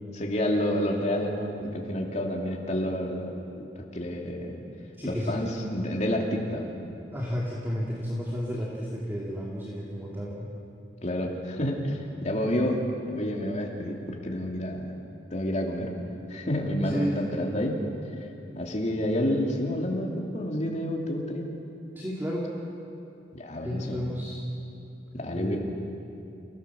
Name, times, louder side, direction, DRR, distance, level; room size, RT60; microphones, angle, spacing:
voice 1, 0.1-3.3 3.7-4.6 5.0-6.7 11.0-12.8 13.1-14.9 15.3-15.9 16.3-17.1 17.3-17.8 18.5-21.5 23.3-24.0 25.1-25.6, left 1 dB, 40° left, 0 dB, 2.9 m, -29 dB
voice 2, 5.0-5.3 7.1-10.5 16.8-17.2 21.9-22.5 23.6-24.4 25.3-25.6, equal, 10° right, -5 dB, 2.6 m, -32 dB
29.0 x 17.0 x 7.1 m, 2.7 s
head